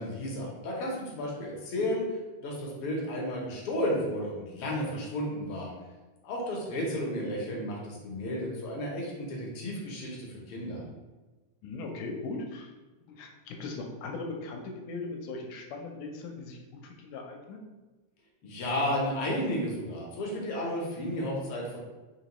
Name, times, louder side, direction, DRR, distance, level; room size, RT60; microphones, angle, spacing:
voice 1, 0.0-2.0 2.4-5.7 6.2-10.8 18.4-21.8, left 1 dB, 70° left, -2 dB, 1.4 m, -32 dB
voice 2, 11.6-12.7 13.0-17.6, left 3 dB, 85° left, 2 dB, 2.1 m, -39 dB
4.8 x 3.0 x 3.0 m, 1.2 s
omnidirectional pair, 3.5 m